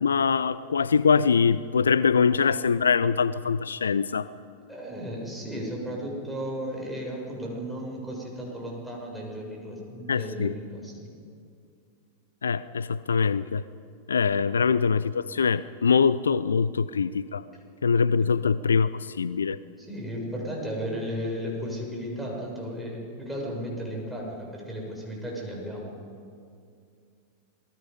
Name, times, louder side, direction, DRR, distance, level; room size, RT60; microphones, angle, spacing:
voice 1, 0.0-4.3 10.1-10.5 12.4-13.6 14.1-17.4 17.8-19.6, left 6 dB, 70° left, 17 dB, 0.4 m, -23 dB
voice 2, 4.7-11.1 18.2-18.3 19.8-25.9, equal, 5° right, -3 dB, 6.5 m, -34 dB
27.5 x 19.5 x 5.2 m, 2.3 s
figure-of-eight pair, 90°, 0 cm